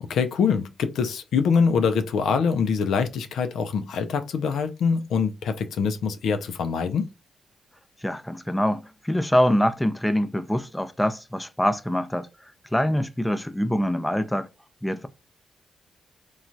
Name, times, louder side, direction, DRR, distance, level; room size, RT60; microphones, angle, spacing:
voice 1, 0.0-7.1, left 6 dB, 85° left, 0.4 m, -24 dB
voice 2, 8.0-12.3 12.7-14.5 14.8-15.1, equal, 5° left, 0.4 m, -24 dB
3.1 x 2.2 x 2.5 m
cardioid pair, 80°, 0 cm